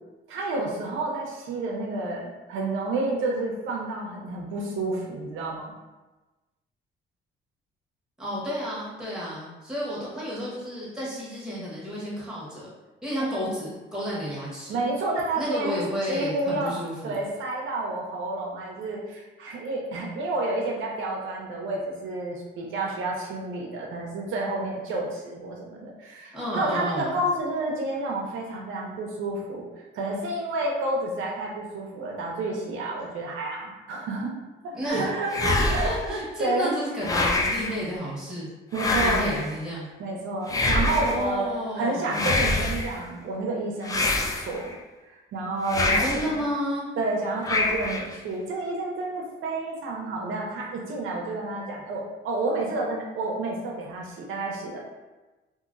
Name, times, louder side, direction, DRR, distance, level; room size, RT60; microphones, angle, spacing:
voice 1, 0.3-5.7 13.2-13.3 14.7-15.8 16.1-16.7 17.0-29.7 29.9-34.3 34.6-36.7 38.7-39.4 40.0-41.5 41.8-44.7 45.0-46.3 47.0-54.8, right 2 dB, 80° right, -2 dB, 0.6 m, -30 dB
voice 2, 8.2-12.7 13.0-14.8 15.4-17.2 26.3-27.2 34.7-35.1 35.6-38.5 38.8-39.9 40.8-42.3 45.8-46.9, equal, 5° right, -7 dB, 1.2 m, -32 dB
sound 1, 35.3-36.1 37.0-37.8 38.7-39.5 40.5-41.3 42.1-42.9 43.8-44.7 45.7-46.3 47.4-48.1, left 2 dB, 20° left, 0.4 m, -25 dB
2.8 x 2.6 x 2.5 m, 1.2 s
cardioid pair, 90°, 20 cm